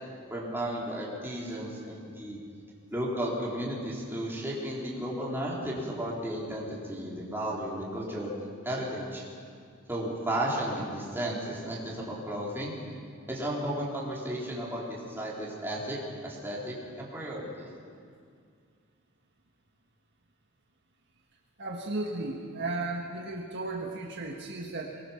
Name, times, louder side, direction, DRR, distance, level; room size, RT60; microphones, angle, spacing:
voice 1, 0.3-2.4 2.9-8.3 8.6-9.2 9.9-12.7 13.3-17.7, right 1 dB, 10° right, -5 dB, 3.9 m, -34 dB
voice 2, 21.6-25.0, right 2 dB, 55° right, -1 dB, 1.7 m, -35 dB
23.5 x 19.5 x 5.9 m, 2.2 s
head